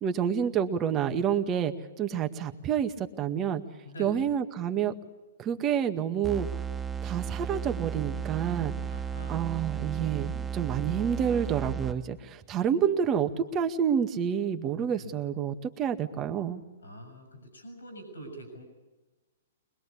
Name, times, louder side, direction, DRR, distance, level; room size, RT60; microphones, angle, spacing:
voice 1, 0.0-3.6 4.0-4.9 5.4-6.5 7.0-8.7 9.3-16.6, right 8 dB, 25° right, 7 dB, 1.9 m, -28 dB
voice 2, 3.8-4.3 8.9-9.6 15.0-15.1 16.8-18.6, right 1 dB, 90° left, 7 dB, 6.6 m, -44 dB
sound 1, 6.2-12.3, right 7 dB, 10° right, 1.1 m, -34 dB
23.5 x 21.5 x 8.5 m, 1.2 s
hypercardioid pair, 125°, 0 cm